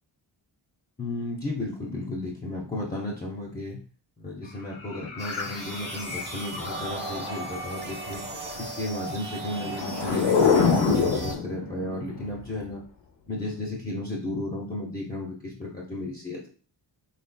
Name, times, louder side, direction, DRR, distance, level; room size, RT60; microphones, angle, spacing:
voice 1, 1.0-3.8 4.2-8.2 8.5-12.8 13.3-16.5, left 1 dB, 20° left, -4 dB, 0.8 m, -34 dB
sound 1, 4.9-6.9 9.4-12.5, left 5 dB, 85° left, 0.8 m, -26 dB
sound 2, 5.2-11.3, right 2 dB, 25° right, 0.8 m, -37 dB
4.2 x 3.0 x 2.3 m, 0.40 s
cardioid pair, 70°, 45 cm